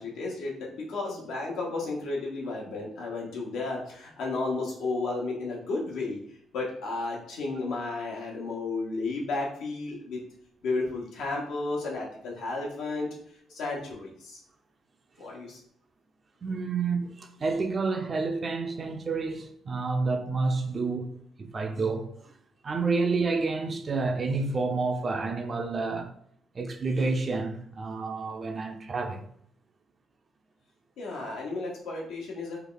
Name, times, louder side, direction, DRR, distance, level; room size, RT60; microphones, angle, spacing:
voice 1, 0.0-6.2 6.5-10.2 10.6-13.1 13.5-14.4 15.2-15.6 31.0-32.6, left 3 dB, 85° left, 1.1 m, -33 dB
voice 2, 16.4-22.3 22.6-26.1 26.5-29.2, right 3 dB, 40° right, 0.5 m, -29 dB
3.4 x 2.4 x 3.8 m
cardioid pair, 90°, 0 cm